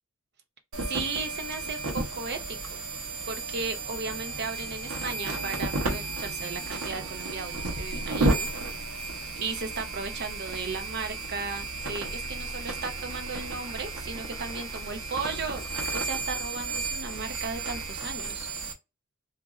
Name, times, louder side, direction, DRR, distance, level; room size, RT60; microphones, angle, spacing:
sound 1, 0.7-18.7, right 3 dB, 80° right, 0.9 m, -33 dB
voice 1, 0.9-2.8 3.3-8.5 8.8-8.9 9.4-15.6 15.9-18.5, right 4 dB, 50° right, 0.6 m, -36 dB
2.9 x 2.5 x 2.4 m
head